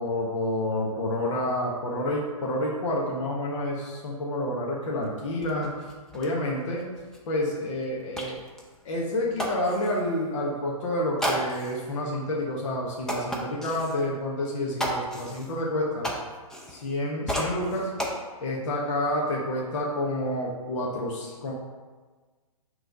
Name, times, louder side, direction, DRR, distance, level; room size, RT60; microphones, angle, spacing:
voice 1, 0.0-5.7 6.1-6.8 7.3-8.4 8.8-16.1 16.7-17.9 18.4-21.5, left 1 dB, 60° left, -3 dB, 1.2 m, -29 dB
sound 1, 5.0-5.1 5.4-10.1 11.2-11.9 12.4-12.5 13.1-14.0 14.8-17.0 17.3-18.1, equal, 5° left, 0.5 m, -34 dB
6.0 x 3.3 x 5.1 m, 1.4 s
hypercardioid pair, 145°, 19 cm